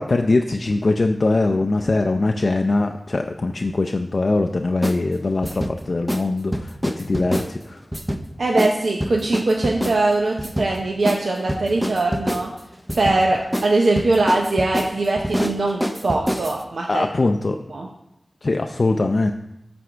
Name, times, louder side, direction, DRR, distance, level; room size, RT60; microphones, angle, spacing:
voice 1, 0.0-7.8 16.9-17.6 18.4-19.3, left 2 dB, 60° left, 5 dB, 0.4 m, -22 dB
sound 1, 4.8-5.0 5.4-5.7 6.1-6.3 6.5-7.5 7.9-8.2 8.6-8.7 9.0-10.0 10.4-10.7 11.1-11.2 11.5-12.5 12.9-13.2 13.5-13.7 14.0-16.6, equal, 5° right, 0.6 m, -25 dB
voice 2, 8.4-12.5 12.9-17.1 17.7-17.9, right 2 dB, 80° right, 0 dB, 0.6 m, -21 dB
9.4 x 3.5 x 6.0 m, 0.87 s
wide cardioid pair, 65°, 0 cm